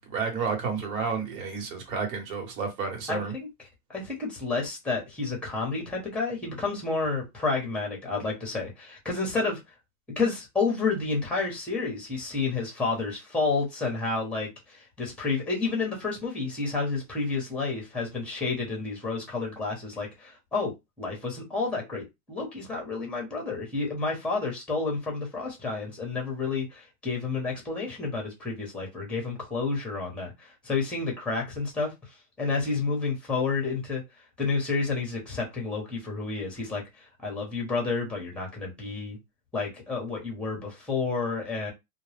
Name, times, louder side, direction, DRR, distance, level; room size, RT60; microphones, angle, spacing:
voice 1, 0.1-3.3, right 5 dB, 60° right, 1.3 m, -31 dB
voice 2, 3.1-3.5 3.9-9.6 10.2-14.5 14.8-31.9 32.4-34.0 34.4-36.8 37.2-39.2 39.5-41.7, left 4 dB, ahead, 0.9 m, -30 dB
2.3 x 2.2 x 3.3 m
hypercardioid pair, 140°, 46 cm